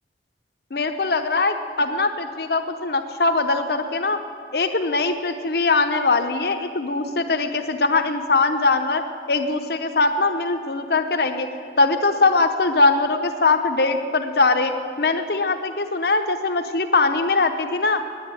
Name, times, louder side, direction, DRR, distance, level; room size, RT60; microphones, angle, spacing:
voice 1, 0.7-4.2 4.5-9.0 9.3-11.5 11.8-18.0, left 3 dB, 60° left, 7 dB, 0.8 m, -21 dB
9.5 x 9.2 x 9.5 m, 2.2 s
head